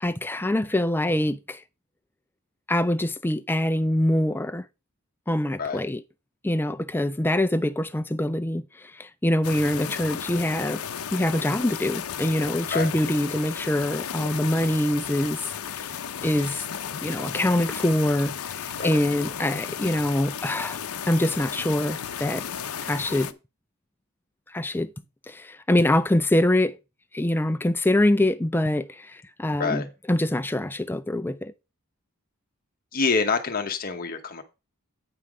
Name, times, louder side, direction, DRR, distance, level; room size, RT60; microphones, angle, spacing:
voice 1, 0.0-1.6 2.7-4.6 5.3-6.0 6.4-10.8 11.1-15.4 15.7-15.9 16.2-16.7 17.0-20.8 21.0-22.4 22.8-23.3 24.5-24.9 25.3-26.8 27.1-31.5, left 1 dB, 10° left, 0.4 m, -24 dB
sound 1, 9.4-23.3, left 8 dB, 70° left, 0.6 m, -34 dB
voice 2, 32.9-34.4, left 4 dB, 40° left, 0.9 m, -26 dB
8.9 x 5.6 x 4.8 m
head